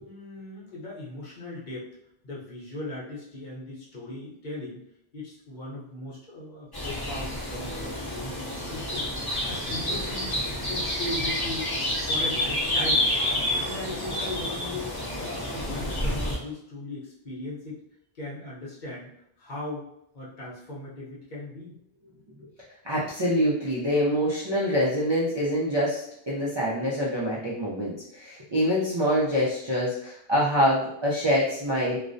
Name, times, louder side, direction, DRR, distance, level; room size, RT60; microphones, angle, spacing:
voice 1, 0.0-1.9 2.2-4.8 5.1-10.3 10.7-13.1 13.6-17.8 18.1-19.1 19.4-19.9 20.1-21.7, left 2 dB, 50° left, -6 dB, 0.8 m, -38 dB
sound 1, 6.7-16.4, left 1 dB, 25° left, 0.6 m, -29 dB
voice 2, 22.8-32.0, equal, 45° right, -7 dB, 0.3 m, -25 dB
2.4 x 2.1 x 2.5 m, 0.77 s
omnidirectional pair, 1.0 m